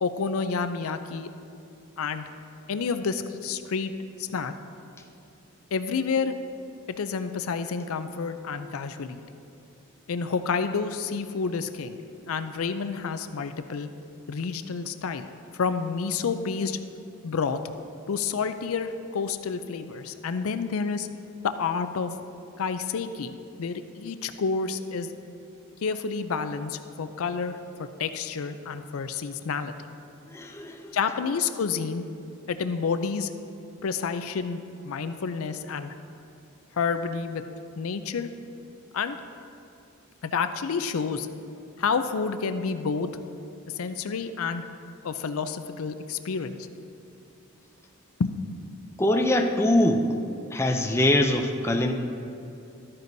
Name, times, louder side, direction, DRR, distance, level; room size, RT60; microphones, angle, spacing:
voice 1, 0.0-1.3 2.0-2.2 2.7-3.9 4.3-4.5 5.7-6.3 7.0-9.2 10.1-12.0 12.3-13.9 14.3-15.3 15.6-16.8 17.2-17.6 18.1-21.1 21.6-22.1 22.6-25.1 25.8-29.7 30.9-32.0 32.5-33.3 33.8-35.9 36.8-37.4 37.8-38.3 38.9-39.2 40.2-41.3 41.8-43.1 43.7-44.6 45.0-46.6 48.2-48.4, left 5 dB, 85° left, 10 dB, 0.5 m, -29 dB
voice 2, 30.3-31.0 49.0-50.1 50.5-51.9, left 1 dB, 10° left, 3 dB, 0.4 m, -23 dB
12.5 x 9.5 x 2.7 m, 2.6 s
head